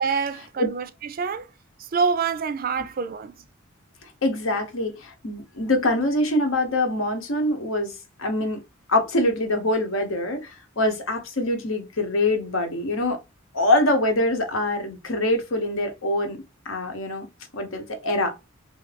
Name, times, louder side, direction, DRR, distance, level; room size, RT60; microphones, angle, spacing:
voice 1, 0.0-1.5 1.8-3.4, right 5 dB, 45° right, 0.4 m, -26 dB
voice 2, 4.2-8.6 8.9-13.2 13.5-16.4 16.6-17.3 17.5-18.3, left 1 dB, 80° left, 1.0 m, -24 dB
3.1 x 2.6 x 3.3 m
head